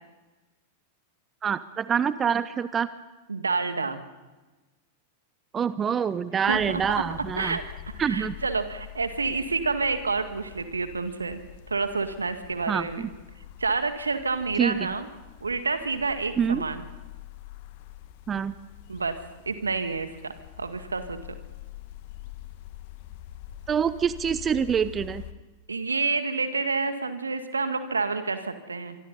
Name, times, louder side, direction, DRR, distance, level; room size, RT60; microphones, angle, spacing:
voice 1, 1.4-2.9 5.5-7.6 8.0-8.3 12.7-13.1 14.6-14.8 16.4-16.6 18.3-18.5 23.7-25.2, right 7 dB, 25° right, 15 dB, 0.8 m, -26 dB
voice 2, 3.3-4.0 6.4-7.0 7.4-7.7 8.0-11.4 11.7-13.1 13.6-15.1 15.4-16.8 18.9-19.2 19.5-21.2 25.7-29.0, right 4 dB, 80° right, 9 dB, 2.0 m, -29 dB
sound 1, 6.5-25.3, left 13 dB, 50° left, 1.7 m, -45 dB
25.5 x 25.0 x 4.1 m, 1.2 s
figure-of-eight pair, 90°, 0 cm